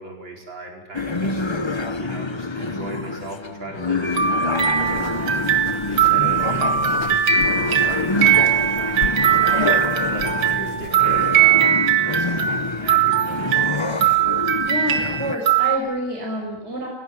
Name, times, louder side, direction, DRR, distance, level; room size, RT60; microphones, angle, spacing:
voice 1, 0.0-1.5 2.0-5.5 5.9-9.7 10.1-13.7, right 1 dB, 65° right, 1 dB, 5.8 m, -37 dB
sound 1, 0.9-15.4, left 3 dB, 40° left, 0.4 m, -27 dB
sound 2, 4.0-15.8, right 9 dB, 90° right, 2.7 m, -20 dB
sound 3, 4.8-11.4, left 7 dB, 70° left, 1.9 m, -37 dB
voice 2, 14.7-16.9, equal, 30° right, -1 dB, 6.1 m, -28 dB
29.0 x 18.0 x 9.5 m, 0.95 s
omnidirectional pair, 2.2 m